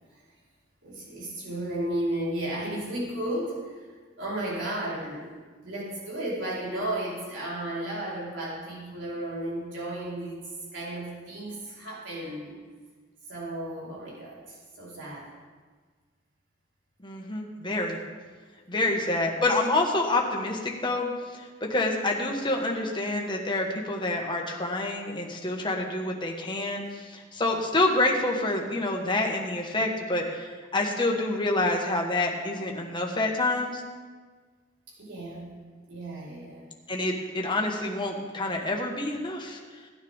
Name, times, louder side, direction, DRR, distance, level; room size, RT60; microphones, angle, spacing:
voice 1, 0.8-3.8 4.2-5.3 5.6-12.6 13.3-15.3 18.7-18.8 35.0-35.5 35.9-36.7, right 1 dB, 75° right, -6 dB, 4.5 m, -34 dB
voice 2, 17.0-18.0 18.7-33.8 36.9-39.6, left 2 dB, 25° left, 1 dB, 1.6 m, -27 dB
17.5 x 10.0 x 3.7 m, 1.5 s
head